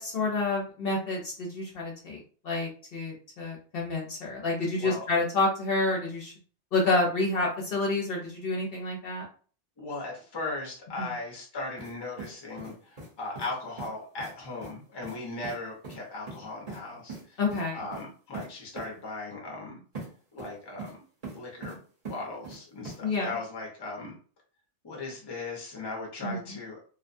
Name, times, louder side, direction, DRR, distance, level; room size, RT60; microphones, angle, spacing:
voice 1, 0.0-2.2 2.4-6.3 6.7-9.3 11.0-11.1 17.4-17.8 23.0-23.3 26.2-26.6, left 3 dB, 60° left, -2 dB, 0.8 m, -29 dB
voice 2, 9.8-17.4 17.7-19.8 20.3-20.9 21.3-21.8 22.1-24.1 24.8-26.8, left 3 dB, 25° left, -2 dB, 0.7 m, -38 dB
sound 1, 11.8-11.9 12.2-13.1 13.3-13.5 13.8-13.9 14.2-14.3 14.6-14.7 15.0-15.2 15.4-15.6 15.8-16.0 16.3-16.8 17.1-17.2 17.5-17.6 17.9-18.0 18.3-18.5 18.7-18.9 19.9-20.1 20.4-20.9 21.2-21.7 22.0-22.6 22.8-23.0, right 3 dB, 35° right, 0.9 m, -40 dB
2.6 x 2.2 x 2.5 m, 0.42 s
omnidirectional pair, 1.2 m